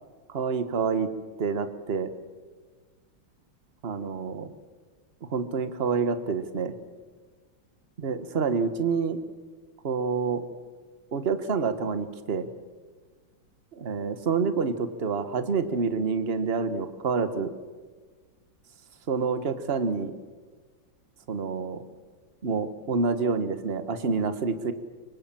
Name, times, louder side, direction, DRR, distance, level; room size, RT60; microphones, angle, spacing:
voice 1, 0.3-1.1 1.4-2.1 3.8-4.5 5.3-6.8 8.0-9.2 9.8-10.4 11.1-12.5 13.7-17.5 19.1-20.1 21.3-21.8 22.4-24.7, right 5 dB, 35° right, 11 dB, 1.4 m, -27 dB
24.5 x 24.5 x 7.6 m, 1.4 s
omnidirectional pair, 2.1 m